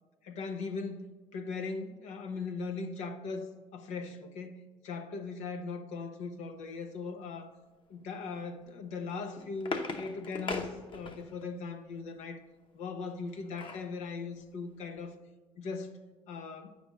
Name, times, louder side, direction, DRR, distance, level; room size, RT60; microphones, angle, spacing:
voice 1, 0.2-4.6 4.8-7.5 7.9-12.4 12.7-15.2 15.6-16.0 16.3-16.7, left 4 dB, 80° left, 0.8 m, -39 dB
sound 1, 9.0-11.5 13.0-13.9 14.4-14.5 14.8-15.0, left 3 dB, 45° left, 0.9 m, -39 dB
9.1 x 3.4 x 6.3 m
cardioid pair, 85°, 12 cm